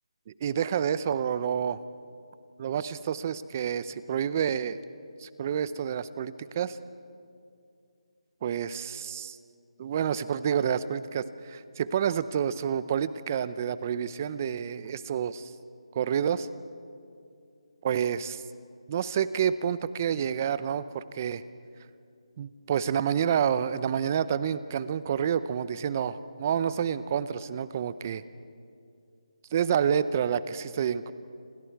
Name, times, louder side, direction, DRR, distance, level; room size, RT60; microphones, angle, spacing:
voice 1, 0.3-1.8 2.6-4.8 5.2-6.8 8.4-9.4 9.8-15.5 15.9-16.5 17.8-18.4 18.9-21.4 22.4-28.2 29.5-31.1, right 8 dB, 25° right, 15 dB, 0.6 m, -29 dB
28.5 x 25.5 x 4.7 m, 2.5 s
figure-of-eight pair, 165°, 3 cm